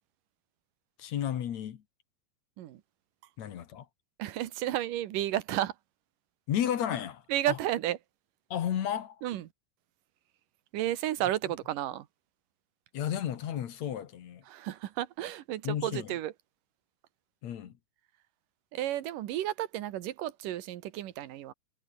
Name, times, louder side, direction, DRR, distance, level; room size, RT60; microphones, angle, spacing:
voice 1, 1.0-1.8 3.4-3.9 6.5-7.6 8.5-9.2 12.9-14.4 15.6-16.1 17.4-17.7, left 10 dB, 60° left, 2.6 m, -33 dB
voice 2, 4.2-5.7 7.3-8.0 9.2-9.5 10.7-12.1 14.5-16.3 18.7-21.5, right 13 dB, 85° right, 2.9 m, -32 dB
omnidirectional pair, 3.7 m